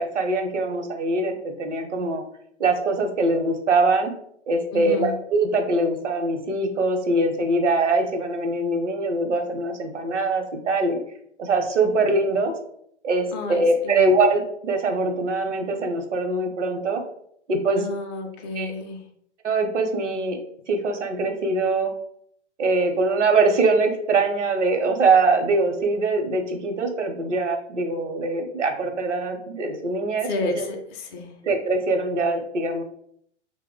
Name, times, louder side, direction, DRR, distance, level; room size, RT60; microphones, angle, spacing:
voice 1, 0.0-2.2 2.6-4.1 4.5-11.0 11.4-12.5 13.0-17.0 17.5-17.9 18.5-18.7 19.4-20.4 20.7-21.9 22.6-30.6 31.4-32.8, right 3 dB, 80° right, 5 dB, 0.7 m, -23 dB
voice 2, 4.7-5.1 13.3-14.0 17.8-19.0 30.2-31.3, left 3 dB, 25° left, 1 dB, 0.4 m, -31 dB
3.0 x 2.0 x 3.6 m, 0.69 s
hypercardioid pair, 120°, 36 cm